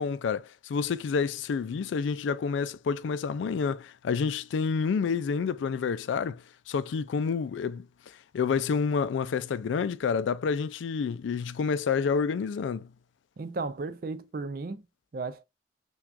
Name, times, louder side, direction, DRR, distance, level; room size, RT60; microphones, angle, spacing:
voice 1, 0.0-7.9 8.3-12.9, left 5 dB, 80° left, 0.3 m, -29 dB
voice 2, 13.4-14.8 15.1-15.4, right 3 dB, 50° right, 0.4 m, -34 dB
5.8 x 2.3 x 2.4 m
head